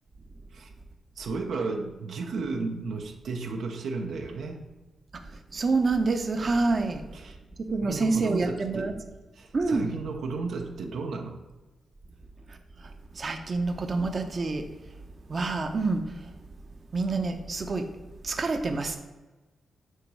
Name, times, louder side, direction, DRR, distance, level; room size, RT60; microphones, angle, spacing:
voice 1, 1.2-4.6 7.1-7.4 7.8-9.0 9.3-11.4, right 4 dB, 80° right, 3 dB, 0.7 m, -33 dB
voice 2, 5.1-7.0 7.7-8.9 9.5-9.9 12.5-12.9 13.1-14.6 15.3-16.3 16.9-17.9 18.2-19.0, right 3 dB, 45° right, 6 dB, 0.7 m, -27 dB
7.4 x 3.1 x 5.4 m, 1.2 s
cardioid pair, 75°, 0 cm